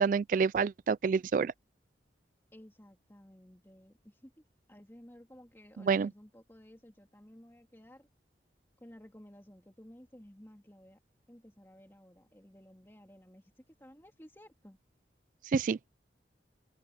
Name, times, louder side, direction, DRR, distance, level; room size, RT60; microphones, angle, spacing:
voice 1, 0.0-1.5 5.8-6.1 15.5-15.8, right 5 dB, 50° right, 0.3 m, -27 dB
voice 2, 2.5-4.4 4.7-8.1 8.8-11.0 11.3-14.8, equal, 15° left, 2.6 m, -55 dB
open air
head